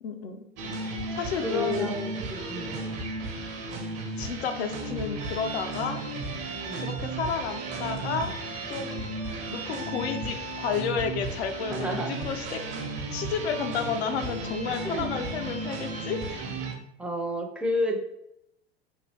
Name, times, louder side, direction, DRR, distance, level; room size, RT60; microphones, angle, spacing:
voice 1, 0.0-0.5 1.1-1.9 4.2-6.0 6.8-8.3 8.7-9.0 9.5-12.6 13.1-16.5, left 6 dB, 75° left, 7 dB, 0.5 m, -31 dB
sound 1, 0.6-16.7, right 2 dB, 50° right, 0.8 m, -34 dB
voice 2, 1.4-2.8 6.7-6.9 11.7-12.1 14.8-15.2 17.0-18.0, equal, 5° right, 2 dB, 0.4 m, -31 dB
2.8 x 2.3 x 3.2 m, 0.79 s
figure-of-eight pair, 75°, 32 cm